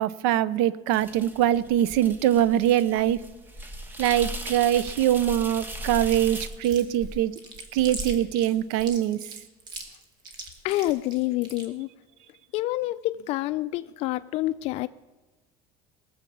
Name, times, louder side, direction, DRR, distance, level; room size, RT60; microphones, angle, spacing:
voice 1, 0.0-3.2 4.0-7.3 7.7-9.2, right 11 dB, 85° right, 19 dB, 0.6 m, -23 dB
sound 1, 0.9-6.5, right 1 dB, 15° right, 1.2 m, -38 dB
Chewing mastication, 6.1-11.7, right 2 dB, 35° right, 2.0 m, -39 dB
voice 2, 10.6-11.9 12.5-14.9, left 16 dB, 55° left, 13 dB, 0.4 m, -27 dB
19.0 x 7.3 x 6.9 m, 1.2 s
cardioid pair, 160°, 13 cm